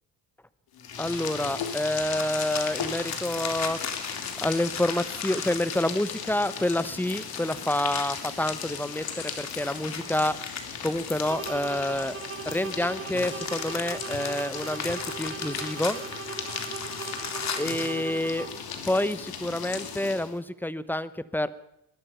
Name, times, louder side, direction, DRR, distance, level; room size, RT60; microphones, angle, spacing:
sound 1, 0.7-20.4, left 7 dB, 60° left, 2.9 m, -37 dB
voice 1, 1.0-3.8 4.4-10.4 10.8-12.2 12.5-16.0 17.6-18.5 18.9-21.5, left 1 dB, 5° left, 16 dB, 0.8 m, -28 dB
sound 2, 2.0-6.3 7.1-12.0 12.8-18.0, left 6 dB, 40° left, 2.4 m, -38 dB
sound 3, 11.3-18.8, right 6 dB, 30° right, 1.7 m, -39 dB
21.5 x 12.0 x 5.6 m, 0.82 s
cardioid pair, 100°, 41 cm